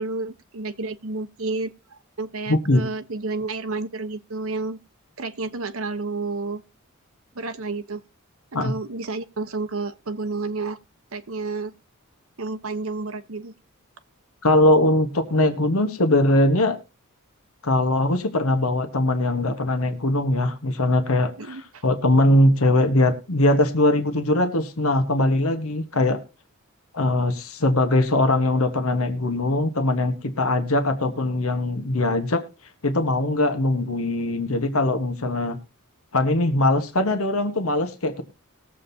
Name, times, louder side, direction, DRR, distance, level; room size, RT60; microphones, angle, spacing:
voice 1, 0.0-4.8 5.2-6.6 7.3-8.0 8.5-10.8 11.1-11.7 12.4-13.5 21.4-21.8, right 3 dB, 70° right, 1.0 m, -30 dB
voice 2, 2.5-2.8 8.5-8.7 14.4-16.8 17.6-26.2 26.9-32.4 32.8-35.6 36.1-38.2, left 1 dB, 75° left, 1.3 m, -21 dB
20.0 x 7.5 x 2.7 m
head